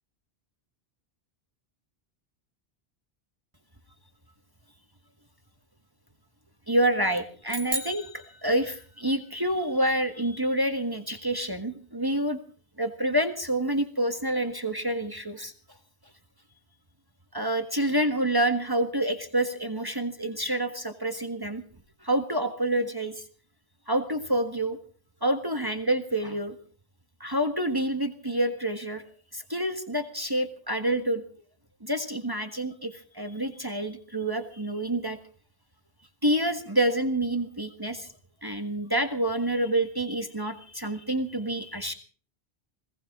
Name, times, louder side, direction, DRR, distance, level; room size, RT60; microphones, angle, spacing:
voice 1, 6.7-8.1 8.4-12.4 12.8-15.5 17.3-21.6 22.0-23.2 23.9-24.8 25.2-26.5 27.2-29.0 29.3-31.2 31.8-35.2 36.2-38.1 38.4-41.9, right 1 dB, 20° right, 7 dB, 1.6 m, -27 dB
sound 1, 7.5-9.1, right 2 dB, 45° right, 2.4 m, -36 dB
20.5 x 18.0 x 3.7 m, 0.42 s
omnidirectional pair, 1.1 m